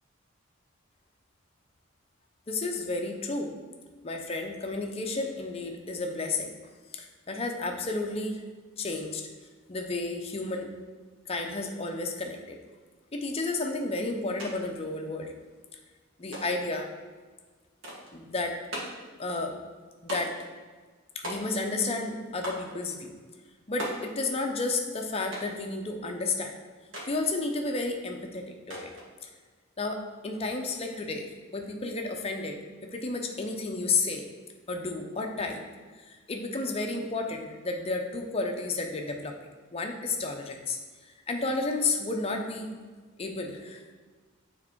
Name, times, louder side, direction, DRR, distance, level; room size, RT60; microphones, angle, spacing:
voice 1, 2.5-3.6 4.0-6.5 6.9-8.5 8.8-9.2 9.7-10.7 11.3-12.6 13.1-15.3 16.2-16.9 18.1-18.6 19.2-19.6 20.0-20.4 21.1-23.2 23.7-26.6 27.1-28.9 29.2-29.3 29.8-34.3 34.7-35.7 36.0-39.4 39.7-42.7 43.2-43.9, left 3 dB, 30° left, 3 dB, 0.6 m, -32 dB
sound 1, 14.4-14.5 14.8-15.5 16.3-16.7 17.8-18.2 18.7-19.1 20.1-20.5 21.2-21.8 22.4-22.7 23.8-24.1 25.3-25.6 26.9-27.2 28.7-29.1, equal, 65° right, 1.5 m, -38 dB
6.4 x 3.6 x 4.5 m, 1.4 s
head